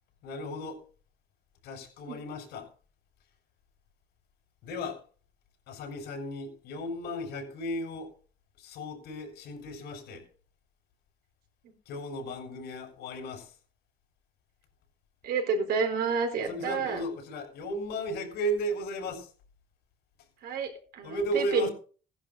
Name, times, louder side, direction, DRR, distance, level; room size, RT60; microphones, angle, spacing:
voice 1, 0.2-0.8 1.6-2.7 4.6-5.0 5.7-8.1 8.6-10.3 11.9-13.5 16.4-19.3 21.0-21.7, equal, 80° left, 5.9 m, -35 dB
voice 2, 15.2-17.0 20.4-21.7, right 5 dB, 70° right, 4.3 m, -29 dB
16.5 x 11.0 x 4.1 m
cardioid pair, 110°, 17 cm